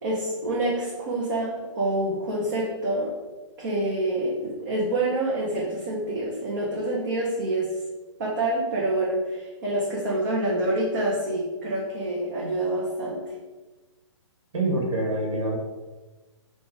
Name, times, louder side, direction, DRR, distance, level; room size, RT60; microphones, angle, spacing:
voice 1, 0.0-3.2 3.6-7.7 8.2-9.2 9.6-13.2, right 1 dB, 40° right, -5 dB, 0.8 m, -27 dB
voice 2, 14.5-15.6, right 2 dB, 85° right, -2 dB, 1.4 m, -25 dB
4.6 x 2.5 x 3.9 m, 1.2 s
hypercardioid pair, 170°, 16 cm